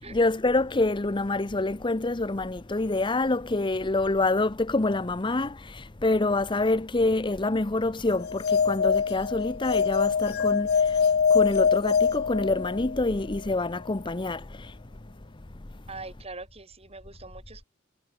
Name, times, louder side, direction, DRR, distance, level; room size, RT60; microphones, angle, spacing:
voice 1, 0.1-14.7, left 2 dB, 25° left, 0.8 m, -26 dB
sound 1, 8.2-13.0, left 6 dB, 55° left, 0.5 m, -24 dB
voice 2, 15.9-17.7, right 3 dB, 30° right, 6.9 m, -42 dB
head